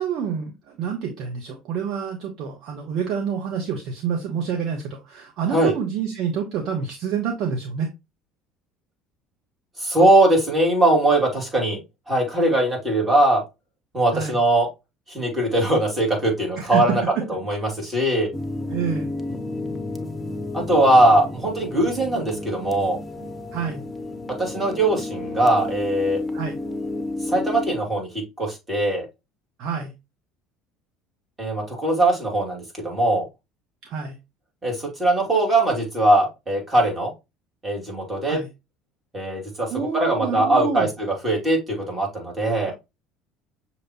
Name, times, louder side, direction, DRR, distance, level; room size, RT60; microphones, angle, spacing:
voice 1, 0.0-7.9 14.1-14.4 16.6-16.8 18.7-19.1 23.5-23.8 26.3-26.6 29.6-29.9 33.8-34.2 38.3-38.5 39.7-40.9, right 7 dB, 50° right, 0.9 m, -28 dB
voice 2, 9.8-11.8 12.1-13.4 13.9-14.7 15.1-17.0 17.3-18.3 20.5-23.0 24.4-26.2 27.2-29.1 31.4-33.3 34.6-37.1 37.6-38.4 39.1-39.7 39.9-42.7, right 1 dB, 20° right, 2.4 m, -21 dB
sound 1, 18.3-27.8, left 2 dB, 10° left, 0.8 m, -31 dB
6.4 x 2.9 x 2.8 m
figure-of-eight pair, 60°, 0 cm